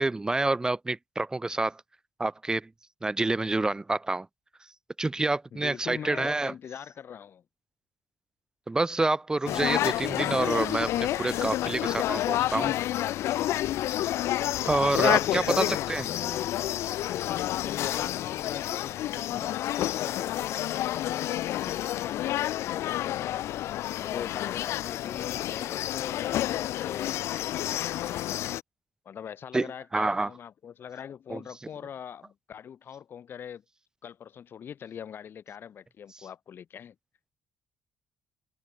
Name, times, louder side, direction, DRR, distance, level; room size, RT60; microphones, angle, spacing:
voice 1, 0.0-1.8 2.2-2.7 3.0-4.3 5.0-6.5 8.7-12.8 14.7-16.0 29.5-29.7 29.9-30.3 31.3-31.4, right 2 dB, 15° right, 1.7 m, -27 dB
voice 2, 5.5-7.4 15.1-16.6 17.1-27.2 28.0-28.2 29.1-33.6 34.0-36.9, left 8 dB, 50° left, 5.5 m, -42 dB
sound 1, 9.5-28.6, left 13 dB, 80° left, 2.0 m, -29 dB
cardioid pair, 120°, 5 cm